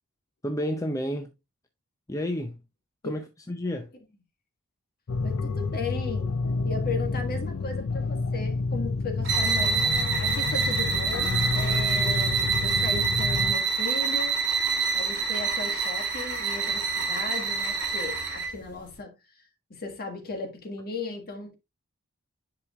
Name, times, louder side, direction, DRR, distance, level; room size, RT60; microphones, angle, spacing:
voice 1, 0.4-1.3 2.1-2.6 3.0-3.9, equal, 15° left, 0.5 m, -30 dB
sound 1, 5.1-13.5, left 4 dB, 65° left, 0.5 m, -29 dB
voice 2, 5.2-6.4 6.6-9.8 10.2-14.4 14.9-19.4 19.7-21.5, left 3 dB, 45° left, 1.6 m, -36 dB
sound 2, 9.2-18.6, right 5 dB, 50° right, 2.5 m, -26 dB
10.0 x 4.9 x 2.4 m
head